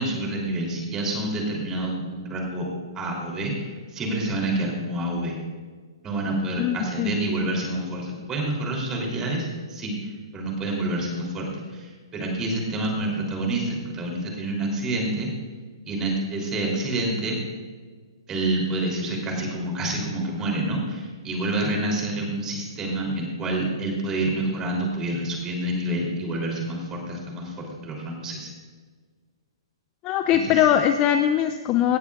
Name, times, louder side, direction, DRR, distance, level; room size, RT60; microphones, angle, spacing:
voice 1, 0.0-2.7 2.9-5.4 6.0-15.3 15.9-17.4 18.3-28.5 30.4-30.6, right 1 dB, 20° right, -1 dB, 3.3 m, -28 dB
voice 2, 6.6-7.1 30.0-32.0, left 10 dB, 25° left, 7 dB, 0.5 m, -21 dB
18.0 x 12.5 x 2.5 m, 1.5 s
hypercardioid pair, 145°, 3 cm